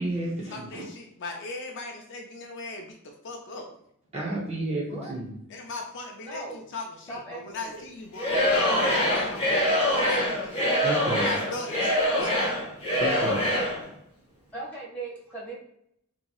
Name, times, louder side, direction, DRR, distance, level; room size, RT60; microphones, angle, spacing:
voice 1, 0.0-0.9 4.1-5.4 10.8-11.3 13.0-13.4, right 2 dB, 30° right, -4 dB, 0.5 m, -31 dB
voice 2, 0.5-3.7 5.5-10.4 11.2-12.5, left 2 dB, 55° left, 1 dB, 0.4 m, -38 dB
voice 3, 6.2-6.6 7.1-7.8 14.5-15.5, right 2 dB, 10° left, -8 dB, 1.3 m, -38 dB
Singing / Crowd, 8.1-13.8, left 1 dB, 25° left, 0.8 m, -24 dB
3.0 x 2.6 x 2.3 m, 0.72 s
head